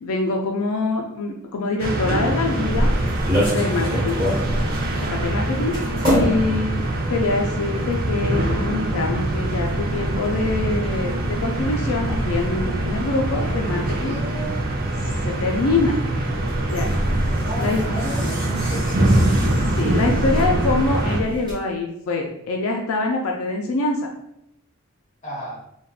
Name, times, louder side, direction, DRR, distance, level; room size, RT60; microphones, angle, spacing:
voice 1, 0.0-2.9 3.5-4.2 5.0-5.7 6.1-6.8 7.1-14.1 15.0-16.0 16.7-16.9 17.6-17.8 19.8-24.1, left 3 dB, 85° left, 1 dB, 0.4 m, -24 dB
sound 1, 1.8-21.2, right 1 dB, 45° right, 0.5 m, -24 dB
sound 2, 2.4-21.5, equal, 25° right, 1.3 m, -29 dB
voice 2, 5.7-6.0 13.9-14.6 17.3-19.4 25.2-25.6, equal, 35° left, -4 dB, 0.9 m, -33 dB
3.4 x 2.2 x 2.3 m, 0.77 s
head